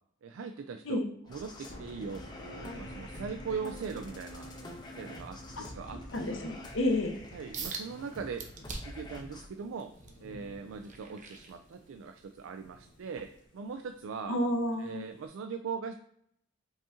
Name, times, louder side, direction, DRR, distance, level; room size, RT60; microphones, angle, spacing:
voice 1, 0.2-1.0 1.3-4.5 4.9-6.4 7.3-8.5 8.8-9.9 10.2-14.4 14.8-15.9, right 5 dB, 75° right, 7 dB, 0.3 m, -40 dB
sound 1, 1.2-9.5, left 1 dB, 20° left, 0.7 m, -47 dB
Thunder / Rain, 1.3-15.3, equal, 55° left, 1.2 m, -53 dB
voice 2, 6.1-7.2 14.3-15.0, left 1 dB, 70° left, 4 dB, 0.8 m, -30 dB
sound 2, 7.5-7.9 8.4-9.1 9.6-12.1 12.6-12.9 13.4-13.5, right 4 dB, 40° right, 0.7 m, -42 dB
5.4 x 2.7 x 3.6 m, 0.72 s
head